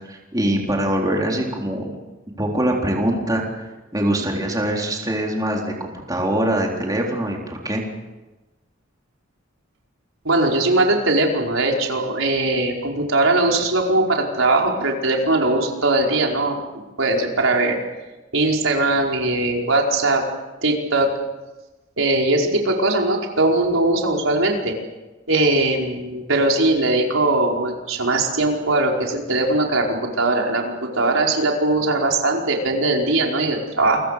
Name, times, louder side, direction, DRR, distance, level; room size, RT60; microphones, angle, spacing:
voice 1, 0.1-2.0 2.4-7.8, right 1 dB, 20° right, 0 dB, 3.8 m, -23 dB
voice 2, 10.2-16.6 17.0-17.8 18.3-20.2 20.6-21.1 22.0-24.7 25.3-34.0, right 2 dB, 85° right, 0 dB, 5.0 m, -20 dB
29.5 x 24.0 x 6.8 m, 1.1 s
head